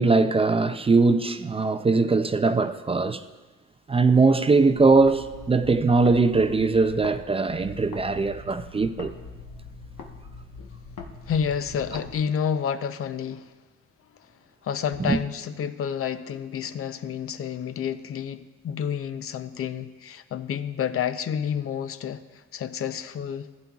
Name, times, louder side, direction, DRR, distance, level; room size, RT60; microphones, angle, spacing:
voice 1, 0.0-3.2 3.9-9.1 15.0-15.2, right 3 dB, 20° right, 0.4 m, -21 dB
sound 1, 4.8-7.2 7.5-12.1, left 4 dB, 75° left, 1.2 m, -42 dB
voice 2, 11.3-13.5 14.6-23.5, left 8 dB, 50° left, 0.6 m, -29 dB
15.0 x 9.7 x 2.4 m
cardioid pair, 90°, 30 cm